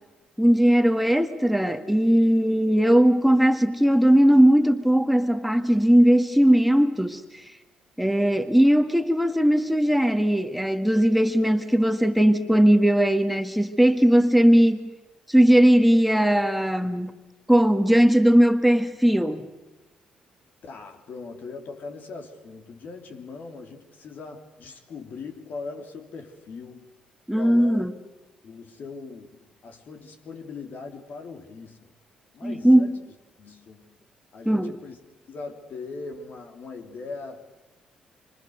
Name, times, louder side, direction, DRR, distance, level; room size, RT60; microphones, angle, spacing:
voice 1, 0.4-7.5 8.0-14.9 15.3-17.1 17.5-19.5 27.3-27.9 32.4-32.9 34.5-34.8, equal, ahead, 1.8 m, -19 dB
voice 2, 20.6-26.9 27.3-27.9 28.4-31.9 32.3-33.0 33.4-33.9 34.3-35.0 35.2-37.5, left 4 dB, 60° left, 3.5 m, -40 dB
26.5 x 25.5 x 6.7 m
hypercardioid pair, 55°, 3 cm